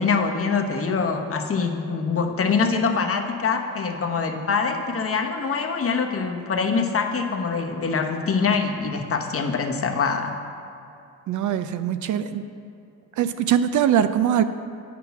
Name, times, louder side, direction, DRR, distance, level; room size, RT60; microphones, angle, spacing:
voice 1, 0.0-10.3, left 5 dB, 40° left, 4 dB, 1.0 m, -24 dB
voice 2, 11.3-12.5 13.2-14.4, right 9 dB, 60° right, 11 dB, 0.5 m, -22 dB
9.2 x 6.0 x 5.8 m, 2.6 s
cardioid pair, 80°, 34 cm